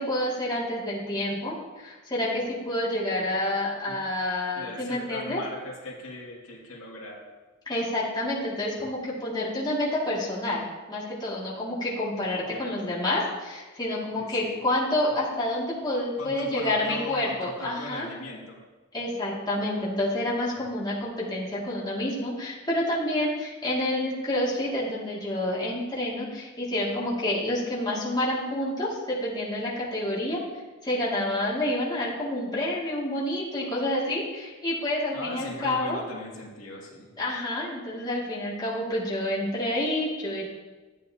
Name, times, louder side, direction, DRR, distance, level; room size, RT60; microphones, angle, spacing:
voice 1, 0.0-5.4 7.7-18.1 18.9-30.4 30.8-36.0 37.2-40.5, left 1 dB, 20° left, -6 dB, 2.2 m, -28 dB
voice 2, 4.6-7.2 12.5-12.9 14.1-14.6 16.2-18.6 35.1-37.1, left 1 dB, 80° left, -3 dB, 2.3 m, -39 dB
13.0 x 9.2 x 2.8 m, 1.3 s
head